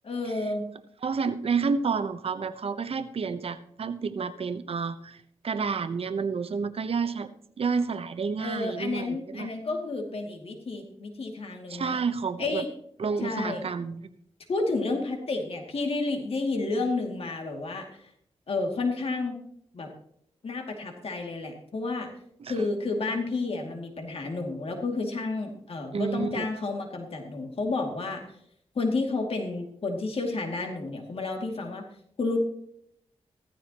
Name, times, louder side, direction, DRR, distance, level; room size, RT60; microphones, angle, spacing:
voice 1, 0.0-0.7 8.4-12.0 12.4-12.7 13.2-13.7 14.5-18.1 18.5-19.3 19.7-19.9 20.4-22.1 22.5-28.2 28.7-31.9 32.2-32.4, left 3 dB, 60° left, 2 dB, 2.4 m, -31 dB
voice 2, 1.0-7.3 7.6-9.5 11.7-12.7 13.0-14.0 22.4-22.5 25.9-26.4, right 5 dB, 60° right, 11 dB, 0.9 m, -30 dB
15.5 x 14.0 x 3.0 m, 0.70 s
cardioid pair, 85°, 11 cm